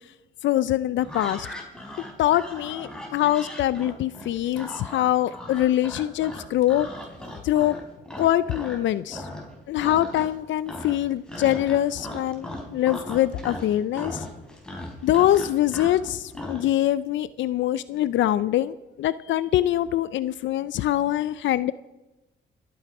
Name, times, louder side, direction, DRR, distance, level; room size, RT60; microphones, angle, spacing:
voice 1, 0.4-1.5 2.2-6.9 7.4-7.8 8.2-9.3 9.7-14.3 15.0-21.7, left 13 dB, 70° left, 16 dB, 0.5 m, -24 dB
sound 1, 1.0-8.8 9.1-9.5 9.8-10.4 10.7-16.6, left 1 dB, 5° left, 3.7 m, -38 dB
25.5 x 9.4 x 4.8 m, 1.1 s
cardioid pair, 90°, 20 cm